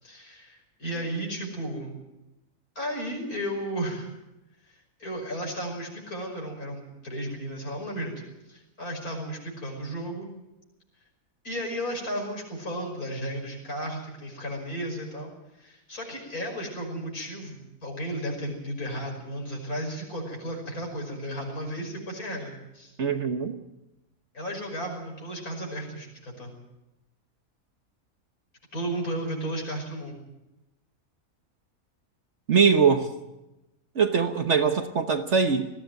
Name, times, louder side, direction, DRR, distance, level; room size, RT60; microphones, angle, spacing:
voice 1, 0.0-2.0 2.8-4.1 4.7-8.2 8.5-10.3 11.4-15.3 15.6-22.9 24.3-26.5 28.7-30.2, right 1 dB, 80° left, 1 dB, 6.1 m, -34 dB
voice 2, 23.0-23.5 32.5-33.1 33.9-35.7, right 6 dB, 55° right, 7 dB, 1.4 m, -22 dB
19.5 x 15.5 x 9.2 m, 0.96 s
omnidirectional pair, 1.5 m